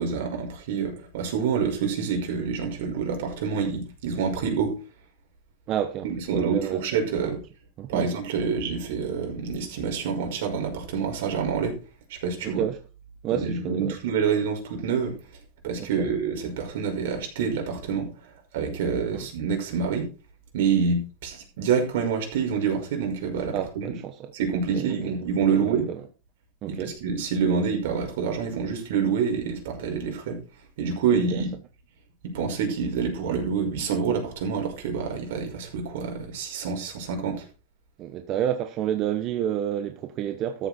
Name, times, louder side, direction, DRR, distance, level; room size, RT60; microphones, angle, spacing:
voice 1, 0.0-4.8 6.0-7.4 7.9-11.8 12.1-12.6 13.3-15.2 15.6-18.1 18.5-20.1 20.5-23.9 24.3-25.9 26.7-30.4 30.8-31.5 32.2-37.4, right 6 dB, 70° right, 5.5 m, -27 dB
voice 2, 5.7-6.8 7.2-7.3 7.8-8.1 12.4-12.8 13.2-14.0 15.8-16.1 19.1-19.3 23.5-24.3 24.7-25.1 25.5-26.0 26.6-26.9 31.1-31.4 38.0-40.7, right 10 dB, 30° right, 1.0 m, -30 dB
13.5 x 8.1 x 4.3 m
supercardioid pair, 165°, 0 cm